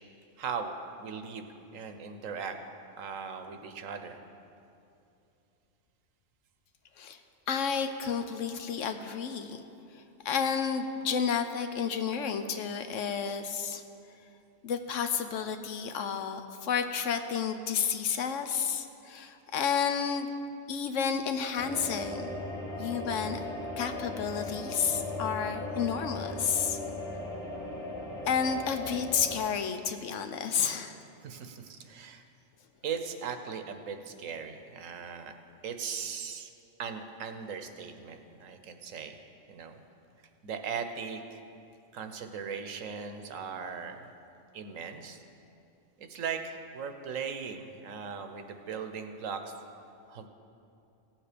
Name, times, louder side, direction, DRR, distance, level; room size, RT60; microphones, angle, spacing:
voice 1, 0.4-0.7 1.0-1.5 1.7-2.6 3.0-4.2 31.2-32.2 32.8-35.3 35.6-36.5 36.8-39.1 39.5-39.8 40.4-41.4 41.9-44.1 44.5-45.2 46.0-49.5 50.1-50.3, right 6 dB, 75° right, 7 dB, 1.2 m, -38 dB
voice 2, 7.5-9.6 10.2-13.8 14.6-20.3 20.7-22.3 22.8-23.4 23.8-26.8 28.3-31.0, left 7 dB, 70° left, 8 dB, 1.0 m, -31 dB
sound 1, 21.6-29.4, left 2 dB, 25° left, 2.2 m, -38 dB
16.5 x 7.4 x 5.0 m, 2.7 s
omnidirectional pair, 1.4 m